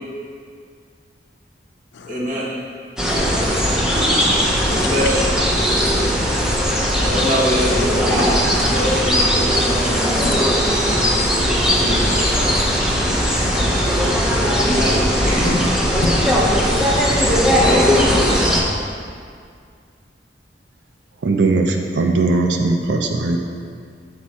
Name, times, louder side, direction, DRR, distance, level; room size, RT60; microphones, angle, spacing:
voice 1, 2.1-2.5 4.6-5.2 7.0-8.3 8.6-10.1 11.7-12.3 14.6-15.0 15.2-15.6 17.6-18.5, equal, 45° right, -6 dB, 1.5 m, -23 dB
sound 1, 3.0-18.6, equal, 5° right, 0.6 m, -18 dB
voice 2, 3.9-4.7 6.7-6.8 10.2-10.3 10.7-10.9 11.3-11.9 13.5-14.2 14.5-14.7, left 5 dB, 80° left, 5 dB, 0.5 m, -38 dB
voice 3, 21.2-23.4, right 3 dB, 70° right, 3 dB, 0.5 m, -19 dB
6.3 x 4.4 x 4.2 m, 2.1 s
head